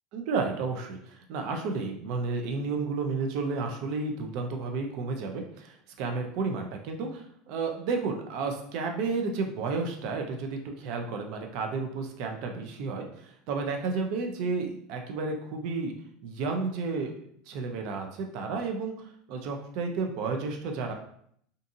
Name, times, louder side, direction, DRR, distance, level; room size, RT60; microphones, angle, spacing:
voice 1, 0.1-15.9 16.2-17.1 17.5-20.9, right 4 dB, 65° right, 3 dB, 0.5 m, -32 dB
2.6 x 2.5 x 2.5 m, 0.66 s
supercardioid pair, 115°, 0 cm